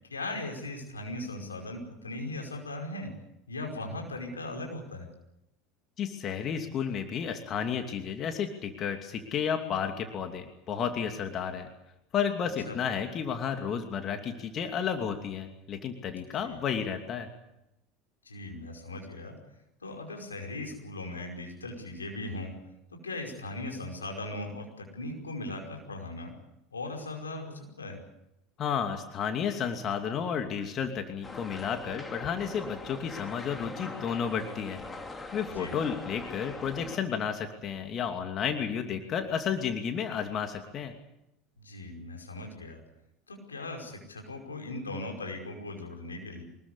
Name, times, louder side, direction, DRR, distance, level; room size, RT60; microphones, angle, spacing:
voice 1, 0.1-3.1 3.5-5.1 12.7-12.8 16.5-16.6 18.2-19.4 19.8-22.5 22.9-26.3 26.7-28.0 35.5-35.8 41.6-42.8 43.3-46.4, left 2 dB, 85° left, 2 dB, 5.3 m, -38 dB
voice 2, 6.0-11.7 12.1-17.3 28.6-34.8 35.3-40.9, left 7 dB, 40° left, 5 dB, 2.7 m, -32 dB
sound 1, 31.2-37.0, left 3 dB, 20° left, 2.7 m, -42 dB
24.5 x 20.5 x 8.3 m, 0.87 s
figure-of-eight pair, 75°, 0 cm